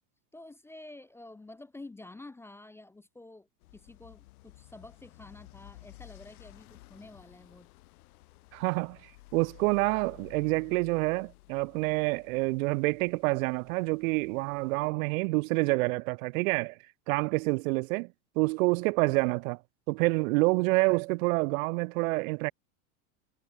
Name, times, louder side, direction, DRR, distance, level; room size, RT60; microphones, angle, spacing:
voice 1, 0.3-7.7, left 2 dB, 5° left, 0.5 m, -49 dB
sound 1, 3.6-14.9, left 19 dB, 80° left, 2.5 m, -55 dB
voice 2, 8.5-16.8 17.1-18.1 18.4-19.6 19.9-22.5, right 26 dB, 65° right, 0.6 m, -27 dB
supercardioid pair, 145°, 44 cm